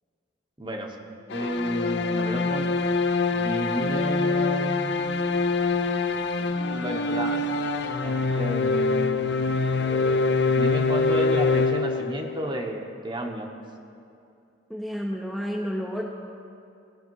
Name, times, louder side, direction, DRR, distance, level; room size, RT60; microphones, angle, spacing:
voice 1, 0.6-1.0 1.3-2.7 3.3-5.0 6.4-7.5 8.0-13.5, right 1 dB, 25° right, 3 dB, 0.9 m, -32 dB
sound 1, 1.3-12.4, left 3 dB, 60° left, 0.5 m, -24 dB
voice 2, 14.7-16.0, equal, ahead, -2 dB, 0.6 m, -30 dB
18.0 x 6.3 x 4.6 m, 2.6 s
head